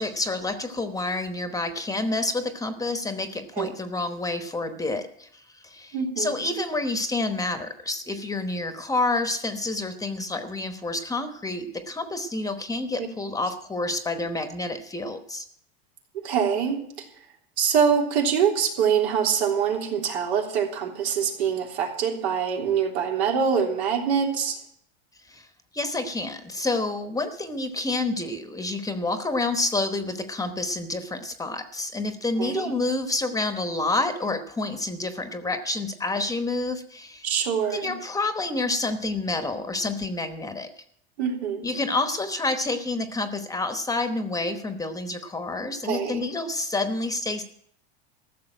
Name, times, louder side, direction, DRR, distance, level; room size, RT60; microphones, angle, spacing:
voice 1, 0.0-15.4 25.3-25.5 25.7-37.3 37.7-40.7 41.6-47.4, left 2 dB, 10° left, 8 dB, 1.0 m, -28 dB
voice 2, 5.9-6.4 16.2-16.8 17.6-24.6 32.4-32.8 37.2-38.0 41.2-41.7 45.8-46.3, right 7 dB, 80° right, 0 dB, 3.5 m, -24 dB
14.5 x 6.9 x 9.1 m, 0.67 s
supercardioid pair, 130°, 32 cm